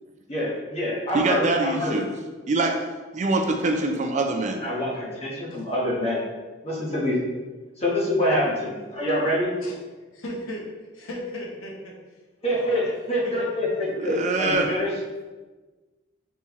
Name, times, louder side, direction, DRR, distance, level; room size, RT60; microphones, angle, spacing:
voice 1, 0.3-2.0 4.6-6.2 6.6-7.2 7.8-9.5 12.4-14.9, left 1 dB, 30° left, -6 dB, 1.2 m, -25 dB
voice 2, 1.1-2.1 2.5-2.9 3.1-4.7 13.9-14.7, right 2 dB, 35° right, 3 dB, 0.4 m, -24 dB
voice 3, 10.1-10.6 10.9-11.9 12.5-12.9 13.2-13.3, left 1 dB, 85° left, -2 dB, 0.9 m, -36 dB
4.2 x 3.6 x 3.0 m, 1.3 s
head